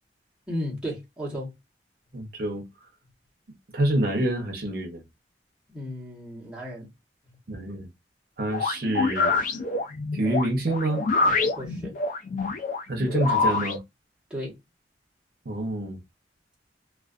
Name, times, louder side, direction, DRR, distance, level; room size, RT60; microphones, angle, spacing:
voice 1, 0.5-1.5 5.7-6.9 7.2-7.4 11.6-12.0 14.3-14.6, equal, 5° right, 1.0 m, -34 dB
voice 2, 2.1-2.7 3.7-5.0 7.5-7.9 8.4-9.3 10.1-11.0 12.9-13.8 15.5-16.0, right 1 dB, 60° right, 0.7 m, -27 dB
sound 1, 8.5-13.8, left 3 dB, 50° left, 0.3 m, -26 dB
2.4 x 2.2 x 2.4 m
head